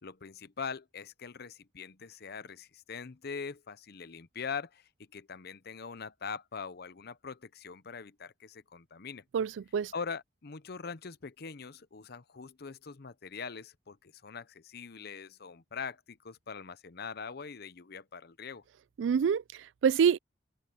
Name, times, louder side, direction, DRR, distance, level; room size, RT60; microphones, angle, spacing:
voice 1, 0.0-9.2 9.9-18.6, left 5 dB, 60° left, 0.8 m, -42 dB
voice 2, 9.3-9.9 19.0-20.2, right 7 dB, 85° right, 0.3 m, -27 dB
open air
head